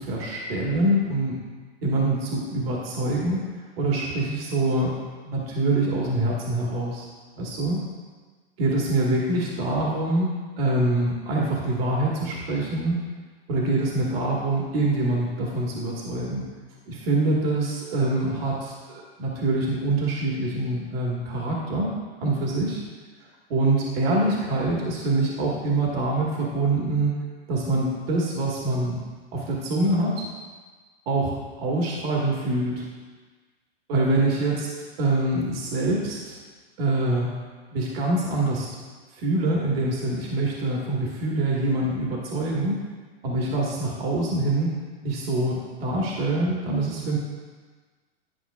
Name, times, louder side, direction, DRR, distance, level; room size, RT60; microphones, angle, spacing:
voice 1, 0.0-1.4 1.8-3.4 3.8-5.0 5.2-7.0 7.3-7.8 8.6-13.0 13.5-16.4 16.9-21.9 22.2-22.8 23.5-27.1 27.5-29.0 29.3-30.3 31.0-32.8 33.9-34.7 35.0-36.3 36.8-37.3 37.7-38.7 39.1-42.8 43.2-44.7 45.0-47.2, right 2 dB, 65° right, -3 dB, 1.7 m, -25 dB
11.0 x 5.7 x 2.4 m, 1.4 s
hypercardioid pair, 145°, 32 cm